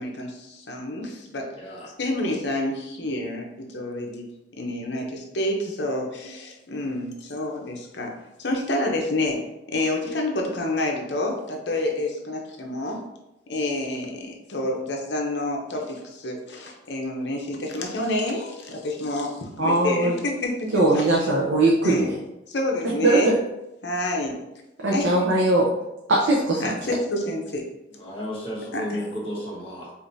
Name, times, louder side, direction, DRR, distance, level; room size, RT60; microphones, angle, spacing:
voice 1, 0.0-1.5 2.0-4.3 4.6-8.1 8.4-9.4 9.7-13.0 13.5-21.3 21.8-22.1 22.5-23.4 23.8-24.4 24.9-25.1 26.6-27.7 28.7-29.0, left 1 dB, 65° left, 1 dB, 0.7 m, -28 dB
voice 2, 1.6-1.9 8.8-8.9 27.9-29.9, equal, 30° left, -5 dB, 1.0 m, -33 dB
voice 3, 19.6-20.2 20.7-22.1 23.0-23.4 24.8-25.6 26.1-26.7, right 2 dB, 80° right, -3 dB, 0.6 m, -20 dB
4.9 x 2.5 x 2.6 m, 0.92 s
head